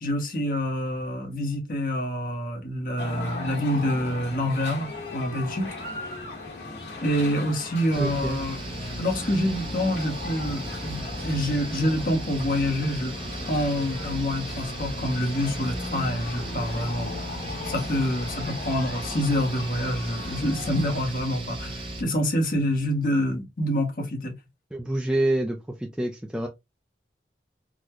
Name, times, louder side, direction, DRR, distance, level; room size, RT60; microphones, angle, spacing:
voice 1, 0.0-5.7 7.0-8.6 9.0-13.2 13.5-17.1 17.6-24.4, equal, 50° left, 1.0 m, -27 dB
sound 1, 3.0-21.0, left 3 dB, 75° left, 1.5 m, -37 dB
sound 2, 7.9-22.0, right 1 dB, 30° right, 0.8 m, -36 dB
voice 2, 8.0-8.4 24.7-26.5, right 1 dB, 5° right, 0.4 m, -27 dB
3.8 x 2.1 x 3.0 m
head